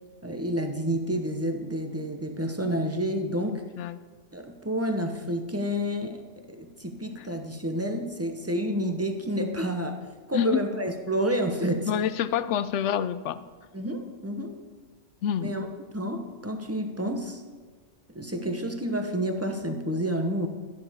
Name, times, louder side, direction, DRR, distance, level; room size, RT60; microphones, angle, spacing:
voice 1, 0.2-3.6 4.3-10.0 10.3-11.9 13.7-14.6 15.4-15.7 15.9-17.4 18.1-20.5, equal, 15° right, 4 dB, 0.8 m, -29 dB
voice 2, 10.3-10.7 11.9-13.4 15.2-15.5, left 9 dB, 75° left, 14 dB, 0.9 m, -27 dB
13.0 x 10.5 x 3.5 m, 1.4 s
omnidirectional pair, 1.2 m